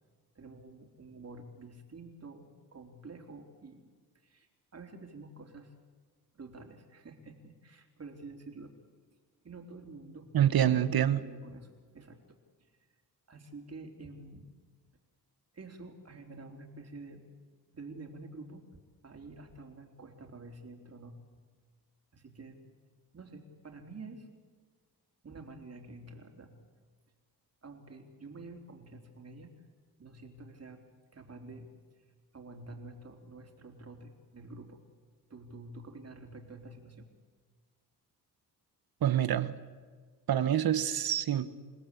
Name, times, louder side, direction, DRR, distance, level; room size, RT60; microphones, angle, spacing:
voice 1, 0.4-3.8 4.2-5.7 6.3-8.7 9.4-10.3 10.9-12.2 12.6-12.8 13.3-14.5 15.5-17.2 17.7-21.4 22.1-22.6 23.1-24.3 25.2-26.6 27.6-29.5 30.0-30.8 31.1-31.7 32.0-32.1 32.3-34.8 35.3-37.1, right 3 dB, 40° right, 3 dB, 3.8 m, -49 dB
voice 2, 10.3-11.2 39.0-39.6 40.3-41.5, right 10 dB, 70° right, 13 dB, 1.3 m, -26 dB
29.0 x 17.5 x 8.5 m, 1.5 s
cardioid pair, 95°, 38 cm